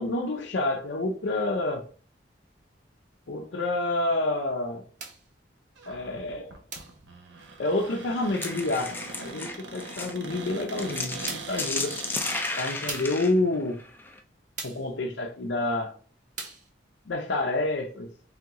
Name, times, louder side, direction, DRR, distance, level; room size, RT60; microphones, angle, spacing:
voice 1, 0.0-1.8 3.3-4.8 5.9-6.6 7.6-12.0 12.5-13.8 14.6-16.0 17.1-18.1, left 2 dB, 70° left, 0.5 m, -28 dB
sound 1, 5.0-5.3 6.7-7.0 8.4-8.7 10.5-10.6 11.3-11.6 12.9-13.2 14.6-14.9 16.4-16.7, right 4 dB, 40° right, 0.8 m, -39 dB
Cupboard open or close, 5.8-12.5, right 3 dB, 75° right, 0.7 m, -41 dB
sound 2, 8.1-14.2, left 3 dB, 10° left, 0.4 m, -33 dB
3.5 x 2.9 x 3.5 m
head